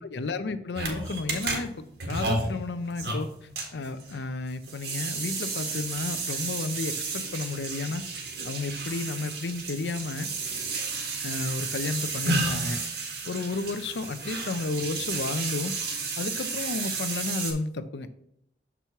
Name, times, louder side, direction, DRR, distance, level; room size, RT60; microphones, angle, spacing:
voice 1, 0.0-3.3 3.7-8.0 8.4-10.3 11.2-15.7 16.2-18.1, left 3 dB, 80° left, 10 dB, 0.6 m, -32 dB
sound 1, 0.7-17.5, right 3 dB, 75° right, 1.7 m, -32 dB
6.8 x 6.0 x 3.0 m, 0.77 s
head